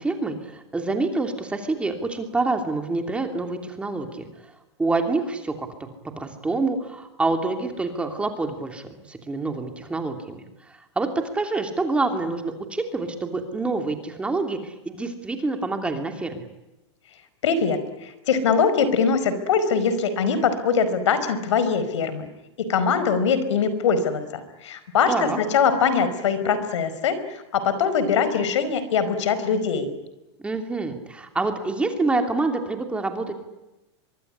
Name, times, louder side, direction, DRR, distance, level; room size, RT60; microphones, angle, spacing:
voice 1, 0.0-4.3 4.8-5.9 6.2-16.5 25.1-25.4 30.4-33.4, right 3 dB, 5° right, 5 dB, 2.9 m, -27 dB
voice 2, 17.4-22.3 22.6-29.9, left 6 dB, 85° left, 12 dB, 4.9 m, -22 dB
23.5 x 23.5 x 9.9 m, 1.0 s
supercardioid pair, 155°, 15 cm